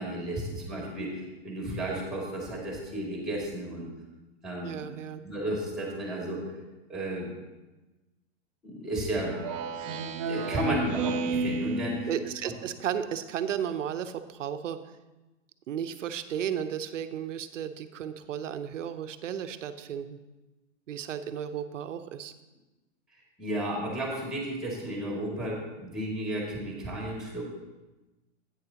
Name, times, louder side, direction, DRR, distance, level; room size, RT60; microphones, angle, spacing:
voice 1, 0.0-3.9 4.4-4.9 5.2-6.4 6.9-7.3 8.6-9.4 9.8-9.9 10.2-12.1 23.4-27.4, right 1 dB, ahead, -2 dB, 2.3 m, -33 dB
voice 2, 4.6-5.2 12.1-14.8 15.7-20.2 20.9-22.3, right 9 dB, 80° right, 10 dB, 0.8 m, -34 dB
Speech synthesizer, 9.2-12.7, right 3 dB, 30° right, 0.4 m, -32 dB
11.0 x 9.0 x 2.9 m, 1.1 s
hypercardioid pair, 140°, 37 cm